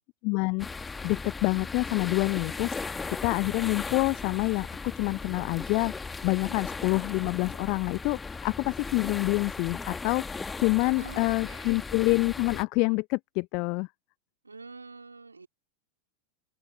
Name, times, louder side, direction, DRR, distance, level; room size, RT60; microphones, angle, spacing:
voice 1, 0.2-0.7 1.0-2.8 3.2-5.9 6.2-13.9, left 30 dB, 45° left, 0.6 m, -27 dB
sound 1, 0.6-12.6, left 4 dB, 15° left, 1.8 m, -37 dB
voice 2, 10.8-11.9 14.4-15.5, right 4 dB, 80° right, 4.0 m, -46 dB
figure-of-eight pair, 90°, 0 cm